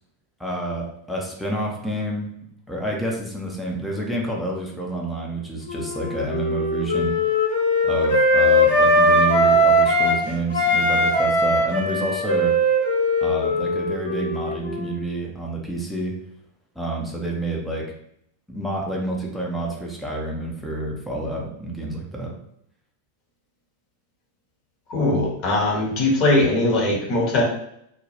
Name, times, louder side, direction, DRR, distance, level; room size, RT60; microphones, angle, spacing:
voice 1, 0.4-2.3 2.7-7.2 7.8-12.5 13.2-16.2 16.8-17.9 18.5-22.3, right 1 dB, 5° left, -2 dB, 0.5 m, -29 dB
Wind instrument woodwind instrument, 5.7-10.2 10.5-15.0, equal, 70° left, 0.8 m, -20 dB
voice 2, 24.9-27.4, left 2 dB, 35° left, -2 dB, 0.8 m, -20 dB
2.1 x 2.0 x 2.8 m, 0.73 s
figure-of-eight pair, 90°, 0 cm